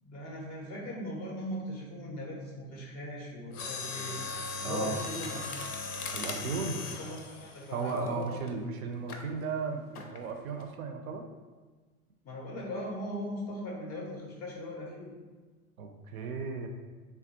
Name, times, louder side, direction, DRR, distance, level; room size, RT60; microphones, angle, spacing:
voice 1, 0.0-4.2 4.6-5.5 6.3-8.4 12.2-15.1, left 1 dB, 25° left, -2 dB, 0.4 m, -39 dB
Mechanisms, 3.5-8.5 9.1-9.3 9.9-10.3 10.6-10.7, left 3 dB, 80° left, 0.5 m, -38 dB
voice 2, 4.6-5.0 6.1-6.8 7.7-11.2 15.8-16.7, right 4 dB, 70° right, 5 dB, 0.5 m, -35 dB
3.4 x 2.2 x 2.7 m, 1.3 s
figure-of-eight pair, 85°, 44 cm